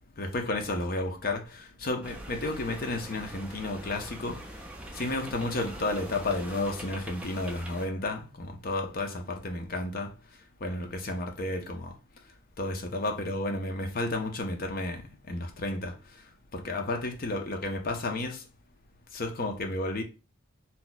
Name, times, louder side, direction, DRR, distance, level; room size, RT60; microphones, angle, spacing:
voice 1, 0.2-4.4 4.9-10.1 10.6-11.9 12.6-15.9 16.5-18.4 19.1-20.0, left 2 dB, 45° left, 0.6 m, -32 dB
sound 1, 2.0-7.9, right 1 dB, 5° right, 0.4 m, -43 dB
2.8 x 2.2 x 3.9 m
head